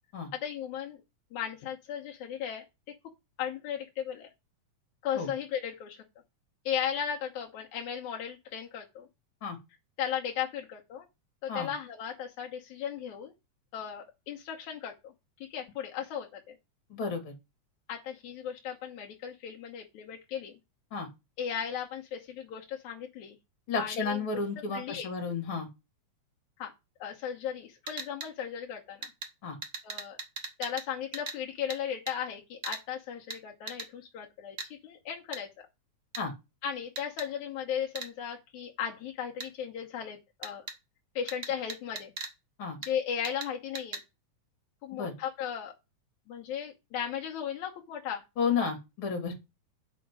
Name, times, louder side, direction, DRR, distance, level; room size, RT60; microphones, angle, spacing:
voice 1, 0.3-1.0 1.3-2.6 3.4-4.3 5.0-6.0 6.7-9.1 10.0-11.1 11.4-13.3 13.7-15.1 15.5-16.6 17.9-20.6 21.4-23.4 23.8-24.2 24.7-25.1 26.6-26.7 27.0-29.1 29.8-30.2 30.6-34.6 34.8-35.5 36.6-40.7 41.2-42.1 42.8-44.0 44.8-45.7 46.3-48.2, left 8 dB, 80° left, 0 dB, 2.5 m, -36 dB
voice 2, 16.9-17.3 20.9-21.1 23.7-25.7 29.4-29.5 36.2-36.3 42.6-42.8 44.9-45.1 48.4-49.3, left 5 dB, 45° left, 3 dB, 3.1 m, -32 dB
sound 1, 27.9-28.3 29.0-29.3 29.6-30.9 31.1-31.4 31.7-31.8 32.1-32.2 32.6-32.8 33.3-33.4 33.7-33.9 34.6-34.7 35.3-35.4 36.1-36.2 36.9-37.3 37.9-38.1 39.4-39.5 40.4-40.8 41.3-42.3 42.8-42.9 43.2-43.5 43.7-44.0, right 3 dB, 35° right, 0.9 m, -39 dB
8.4 x 5.1 x 6.1 m, 0.24 s
omnidirectional pair, 3.4 m